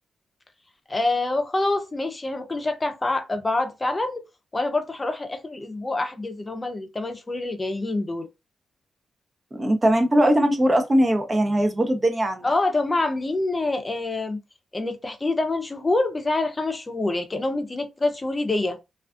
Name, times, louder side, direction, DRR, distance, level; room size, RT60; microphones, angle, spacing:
voice 1, 0.9-4.2 4.5-8.3 12.4-14.4 14.7-18.8, left 2 dB, 25° left, 0.6 m, -26 dB
voice 2, 9.5-12.5, right 1 dB, 30° right, 0.7 m, -20 dB
2.4 x 2.4 x 2.4 m
cardioid pair, 60°, 0 cm